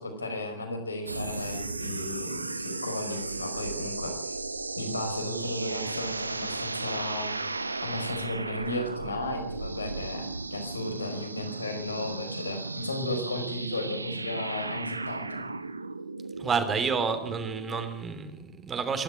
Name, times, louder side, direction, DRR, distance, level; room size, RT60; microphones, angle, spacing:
voice 1, 0.0-4.3 4.8-7.4 7.8-15.4, left 2 dB, 75° left, 5 dB, 4.8 m, -35 dB
sound 1, 1.1-17.9, right 3 dB, 80° right, 1.0 m, -35 dB
voice 2, 16.4-19.0, right 5 dB, 20° right, 9 dB, 3.2 m, -29 dB
26.5 x 12.5 x 8.6 m, 0.83 s
figure-of-eight pair, 90°, 0 cm